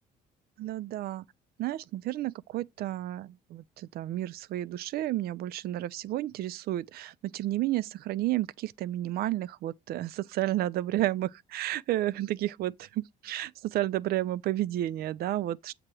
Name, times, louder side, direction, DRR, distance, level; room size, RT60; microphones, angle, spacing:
voice 1, 0.6-1.2 1.6-15.7, right 14 dB, 65° right, 0.5 m, -31 dB
7.6 x 2.9 x 4.6 m
cardioid pair, 110°, 17 cm